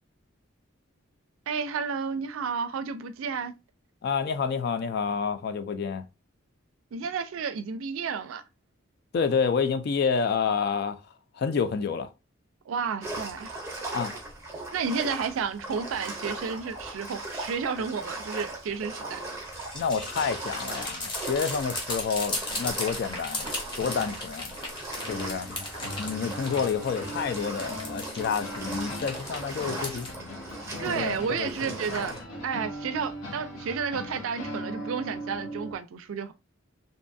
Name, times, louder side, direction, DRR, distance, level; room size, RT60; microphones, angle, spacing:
voice 1, 1.5-3.5 6.9-8.4 12.7-13.6 14.7-19.2 30.8-32.1 32.4-36.3, right 6 dB, 80° right, 0.4 m, -31 dB
voice 2, 4.0-6.0 9.1-11.0 11.3-12.1 13.9-14.1 19.7-24.6 25.1-25.5 26.0-30.1 30.9-31.7, left 6 dB, 50° left, 0.3 m, -29 dB
sound 1, 13.0-32.2, right 2 dB, 15° right, 0.6 m, -39 dB
sound 2, 19.5-30.1, left 2 dB, 25° left, 0.7 m, -37 dB
sound 3, 24.9-35.8, equal, 75° left, 0.8 m, -39 dB
2.6 x 2.2 x 2.5 m
head